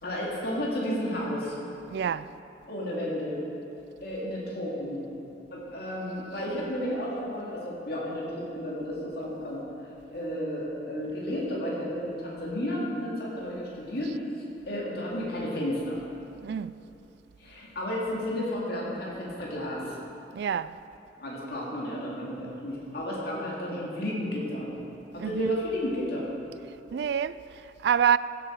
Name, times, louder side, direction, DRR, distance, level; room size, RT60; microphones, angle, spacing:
voice 1, 0.0-1.6 2.7-3.4 4.0-5.0 5.5-9.6 10.1-14.1 14.7-16.0 17.4-20.0 21.2-24.7 25.1-26.3, equal, 60° left, 2.3 m, -32 dB
voice 2, 1.9-2.3 16.4-16.8 20.3-20.8 25.2-25.6 26.9-28.2, right 8 dB, 65° right, 0.3 m, -27 dB
15.5 x 8.0 x 4.6 m
head